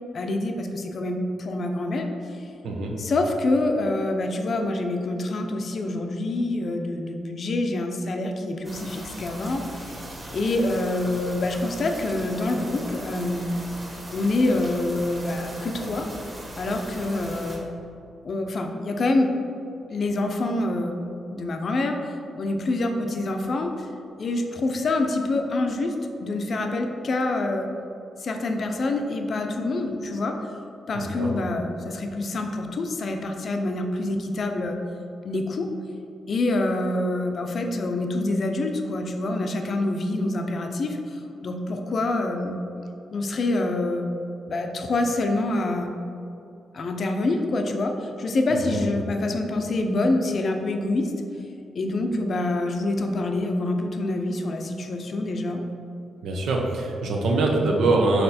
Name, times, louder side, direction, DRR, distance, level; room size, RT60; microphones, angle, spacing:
voice 1, 0.1-2.4 3.0-10.0 10.3-13.5 14.1-16.1 16.6-17.7 18.2-19.3 19.9-21.0 21.3-22.0 22.3-23.9 24.2-27.7 28.2-30.4 30.9-34.8 35.2-35.7 36.3-42.6 43.1-44.1 44.5-45.9 46.7-51.1 51.7-55.6, left 2 dB, 45° left, 4 dB, 0.6 m, -26 dB
voice 2, 2.6-3.0 30.9-31.3 48.7-48.8 56.2-58.2, right 2 dB, 85° right, 0 dB, 0.9 m, -23 dB
sound 1, 8.6-17.6, right 1 dB, 25° right, 1.3 m, -39 dB
6.6 x 4.2 x 4.2 m, 2.7 s
cardioid pair, 145°, 0 cm